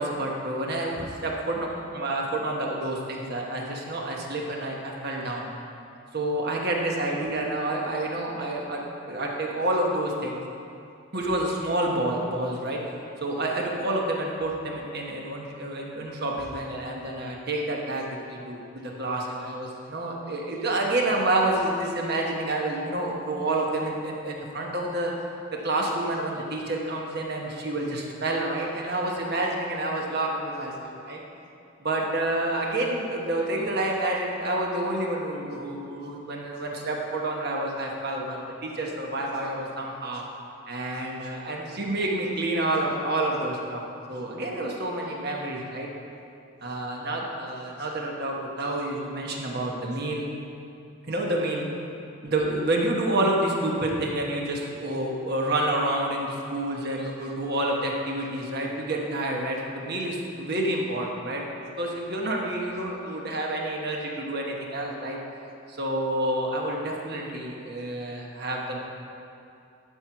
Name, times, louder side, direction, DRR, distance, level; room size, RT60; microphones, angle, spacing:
voice 1, 0.0-5.5 6.1-10.4 11.1-12.8 13.2-25.1 25.6-31.2 31.8-40.3 40.7-43.8 44.1-45.9 46.6-50.3 51.1-51.7 52.2-61.5 61.8-65.2 65.7-68.8, right 1 dB, 50° right, -1 dB, 1.2 m, -29 dB
11.5 x 4.6 x 5.7 m, 2.6 s
head